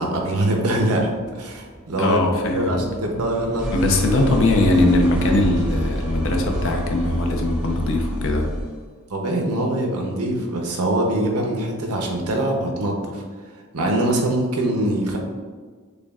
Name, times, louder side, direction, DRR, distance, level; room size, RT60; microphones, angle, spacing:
voice 1, 0.0-2.2 2.5-3.7 4.3-4.6 9.1-13.2 13.7-15.2, right 1 dB, 85° right, 1 dB, 0.7 m, -23 dB
sound 1, 1.0-8.8, equal, 5° right, 0.5 m, -29 dB
voice 2, 2.0-2.8 3.7-8.5, left 2 dB, 60° left, 2 dB, 0.6 m, -20 dB
6.6 x 2.2 x 2.4 m, 1.5 s
head